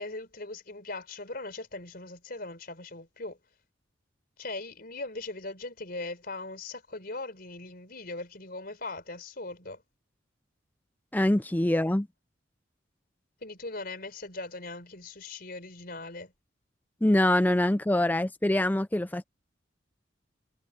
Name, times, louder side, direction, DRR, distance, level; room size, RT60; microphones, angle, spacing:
voice 1, 0.0-3.4 4.4-9.8 13.4-16.3, left 2 dB, 50° left, 4.4 m, -39 dB
voice 2, 11.1-12.1 17.0-19.2, left 1 dB, 10° left, 0.4 m, -24 dB
head